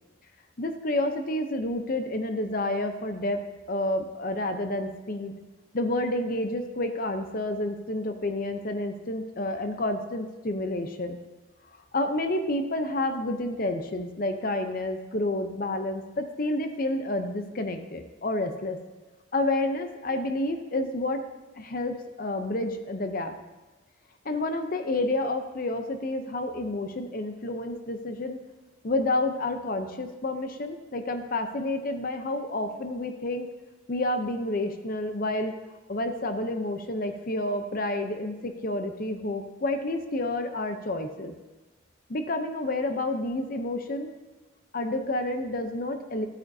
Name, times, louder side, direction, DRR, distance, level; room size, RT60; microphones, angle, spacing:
voice 1, 0.6-5.3 5.7-11.2 11.9-18.8 19.3-21.2 21.6-23.3 24.2-28.4 28.8-33.5 33.9-35.6 35.9-41.3 42.1-44.1 44.7-46.3, left 2 dB, 45° left, 7 dB, 0.6 m, -29 dB
13.5 x 8.7 x 2.7 m, 1.2 s
head